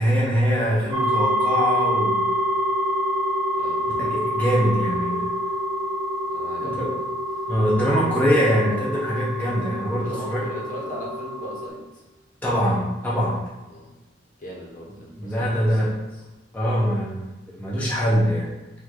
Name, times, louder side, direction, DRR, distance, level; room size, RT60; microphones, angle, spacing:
voice 1, 0.0-2.2 3.9-5.3 6.6-6.9 7.5-10.4 12.4-13.4 15.2-15.9 16.5-17.2 17.6-18.5, equal, 10° left, -7 dB, 0.8 m, -23 dB
sound 1, 0.9-11.7, equal, 20° right, 0.8 m, -26 dB
voice 2, 3.5-3.9 6.3-7.4 10.0-12.0 13.7-13.8 14.4-15.9, equal, 45° left, -3 dB, 1.1 m, -38 dB
5.1 x 2.6 x 3.8 m, 1.1 s
head